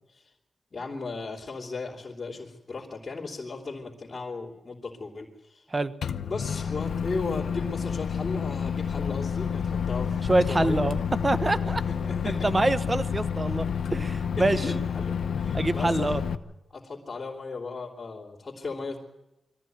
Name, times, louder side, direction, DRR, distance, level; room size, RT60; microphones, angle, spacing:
voice 1, 0.7-5.7 6.3-10.9 11.6-12.5 14.4-16.1 16.7-19.0, left 3 dB, 40° left, -4 dB, 3.3 m, -36 dB
Microwave oven, 6.0-16.4, left 7 dB, 80° left, 0.8 m, -29 dB
voice 2, 10.3-11.8 12.2-14.6 15.5-16.2, right 2 dB, 25° right, 12 dB, 1.1 m, -26 dB
22.5 x 14.5 x 9.4 m, 0.96 s
cardioid pair, 80°, 0 cm